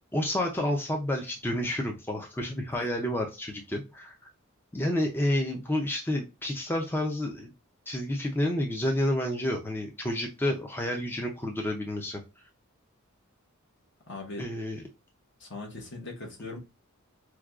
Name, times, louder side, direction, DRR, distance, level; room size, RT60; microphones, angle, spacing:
voice 1, 0.1-4.1 4.7-7.5 7.9-12.2 14.4-14.8, left 1 dB, 10° left, 0.4 m, -30 dB
voice 2, 14.1-14.4 15.4-16.6, left 2 dB, 60° left, 1.1 m, -40 dB
4.6 x 2.2 x 2.4 m
head